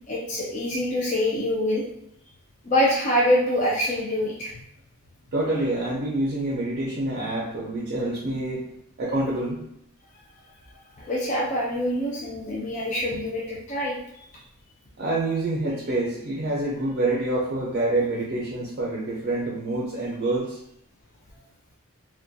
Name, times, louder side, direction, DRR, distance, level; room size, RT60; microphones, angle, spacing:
voice 1, 0.1-1.8 2.6-4.5 11.0-14.3, left 1 dB, 35° left, -4 dB, 0.4 m, -25 dB
voice 2, 5.3-8.6 9.0-9.6 15.0-20.6, right 2 dB, 45° right, -3 dB, 0.5 m, -27 dB
2.3 x 2.2 x 2.6 m, 0.77 s
head